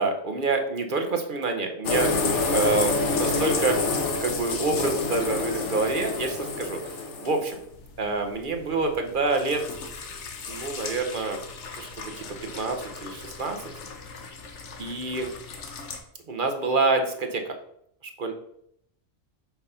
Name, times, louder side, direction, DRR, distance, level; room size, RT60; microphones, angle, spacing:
voice 1, 0.0-3.8 4.2-7.0 7.2-7.6 8.0-9.6 10.5-11.4 11.8-11.9 12.2-12.3 12.5-13.6 14.8-15.3 16.3-17.5 18.2-18.3, right 3 dB, 45° right, 5 dB, 0.9 m, -27 dB
sound 1, 1.8-16.0, left 3 dB, 65° left, 1.2 m, -30 dB
5.9 x 4.1 x 5.5 m, 0.72 s
omnidirectional pair, 1.3 m